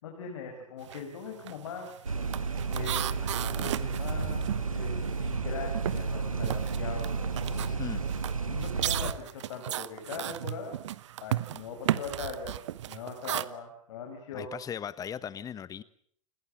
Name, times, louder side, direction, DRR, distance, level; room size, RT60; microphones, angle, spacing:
voice 1, 0.0-2.2 2.7-7.8 8.5-10.8 11.2-12.6 12.8-14.5, left 5 dB, 60° left, 2 dB, 5.2 m, -41 dB
sound 1, 0.8-1.1 1.4-5.4 5.7-13.4, right 12 dB, 60° right, 1.0 m, -35 dB
sound 2, 2.0-9.1, right 4 dB, 80° right, 2.1 m, -32 dB
voice 2, 7.7-8.1 14.3-15.8, left 8 dB, 20° left, 18 dB, 1.2 m, -38 dB
29.5 x 21.0 x 7.5 m, 0.62 s
figure-of-eight pair, 95°, 17 cm